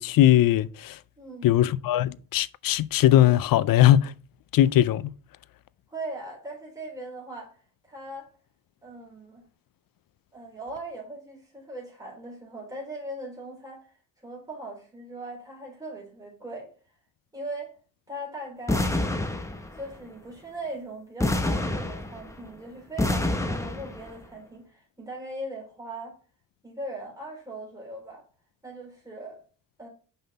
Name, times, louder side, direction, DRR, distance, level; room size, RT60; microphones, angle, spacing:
voice 1, 0.0-1.0 1.4-4.1 4.5-5.1, left 13 dB, 80° left, 0.5 m, -20 dB
voice 2, 1.2-1.5 5.9-7.5 7.9-8.3 8.8-9.4 10.3-13.9 14.2-16.7 17.3-17.7 18.1-18.9 19.8-26.2 26.6-28.2 28.6-29.4 29.8-29.9, right 1 dB, 10° right, 3.8 m, -39 dB
sound 1, 18.7-19.9 21.2-22.5 23.0-24.1, left 1 dB, 10° left, 0.8 m, -27 dB
5.6 x 5.6 x 4.1 m
wide cardioid pair, 130°, 34 cm